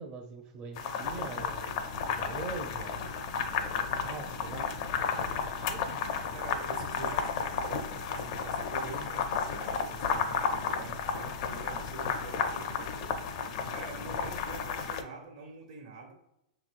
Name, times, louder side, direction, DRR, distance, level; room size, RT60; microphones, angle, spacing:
voice 1, 0.0-1.9 2.2-3.1 3.5-6.0 14.1-14.3, right 4 dB, 30° right, 0 dB, 0.6 m, -43 dB
sound 1, 0.8-15.0, left 6 dB, 55° left, 0.5 m, -33 dB
voice 2, 6.3-13.2 13.7-16.1, right 4 dB, 65° right, 2 dB, 1.3 m, -46 dB
5.7 x 3.0 x 2.5 m, 0.83 s
hypercardioid pair, 120°, 4 cm